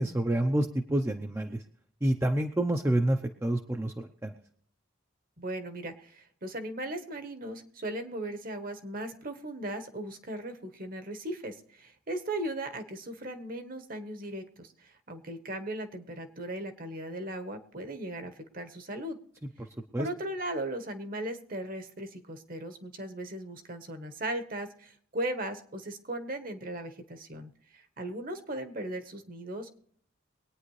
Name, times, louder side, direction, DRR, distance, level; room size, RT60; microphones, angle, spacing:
voice 1, 0.0-1.6 2.0-4.3 19.9-20.1, right 1 dB, 10° right, 4 dB, 0.6 m, -28 dB
voice 2, 5.4-19.2 20.0-29.7, right 1 dB, 45° right, 8 dB, 1.2 m, -37 dB
23.5 x 9.3 x 3.2 m, 0.63 s
head